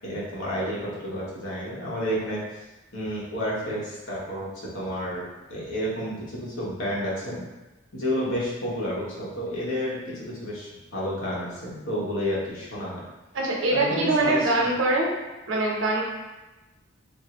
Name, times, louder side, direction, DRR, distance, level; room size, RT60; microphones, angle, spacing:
voice 1, 0.0-2.4 2.9-7.4 7.9-13.0 13.7-14.5, equal, 85° left, -6 dB, 1.0 m, -30 dB
voice 2, 13.3-15.1 15.5-16.0, right 2 dB, 80° right, -1 dB, 0.6 m, -23 dB
3.6 x 2.0 x 2.9 m, 1.1 s
head